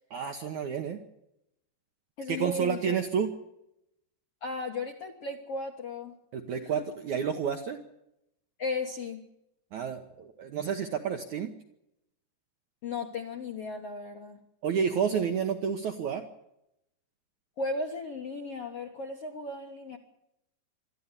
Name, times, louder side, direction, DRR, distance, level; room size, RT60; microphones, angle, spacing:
voice 1, 0.1-1.0 2.3-3.3 6.3-7.8 9.7-11.5 14.6-16.2, right 7 dB, 65° right, 5 dB, 1.9 m, -30 dB
voice 2, 2.2-3.0 4.4-6.2 8.6-9.2 12.8-14.4 17.6-20.0, left 3 dB, 60° left, 3 dB, 1.6 m, -35 dB
21.5 x 13.5 x 9.8 m, 0.83 s
omnidirectional pair, 4.9 m